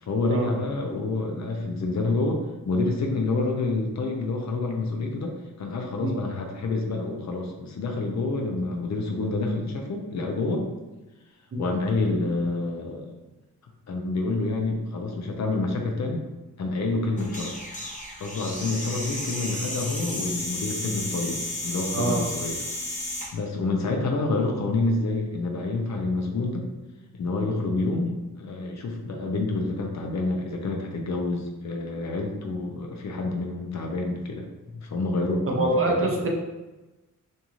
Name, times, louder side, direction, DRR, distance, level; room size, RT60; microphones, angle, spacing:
voice 1, 0.0-10.7 11.6-13.1 13.9-16.2 16.6-17.6 18.2-22.7 23.3-26.7 27.1-28.1 28.4-34.5 34.7-36.2, left 3 dB, 60° left, 1 dB, 0.5 m, -28 dB
sound 1, 17.2-23.3, left 1 dB, 25° left, 0.7 m, -33 dB
voice 2, 35.6-36.3, right 2 dB, 45° right, 0 dB, 0.5 m, -24 dB
2.6 x 2.4 x 3.0 m, 1.1 s
wide cardioid pair, 150°, 32 cm